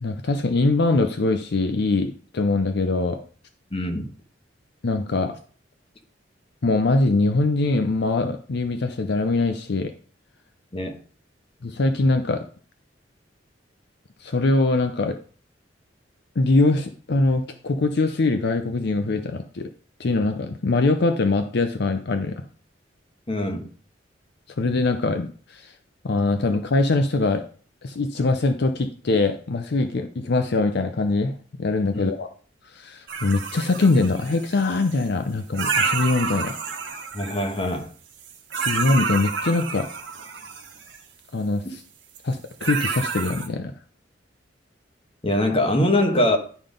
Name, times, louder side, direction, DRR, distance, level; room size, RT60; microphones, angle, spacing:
voice 1, 0.0-3.2 4.8-5.4 6.6-9.9 11.6-12.5 14.2-15.2 16.4-19.7 20.0-22.4 24.6-25.7 26.0-27.4 27.8-32.3 32.6-36.5 38.7-39.9 41.3-41.8 42.2-43.7, left 3 dB, 65° left, 7 dB, 0.6 m, -22 dB
voice 2, 3.7-4.1 10.7-11.0 23.3-23.7 31.9-32.1 37.1-37.9 45.2-46.4, left 1 dB, 30° left, 4 dB, 1.2 m, -23 dB
sound 1, 33.1-35.0 35.5-37.8 38.2-41.0 42.1-42.3 42.6-43.5, right 5 dB, 75° right, 1.4 m, -29 dB
11.0 x 3.9 x 5.1 m, 0.43 s
head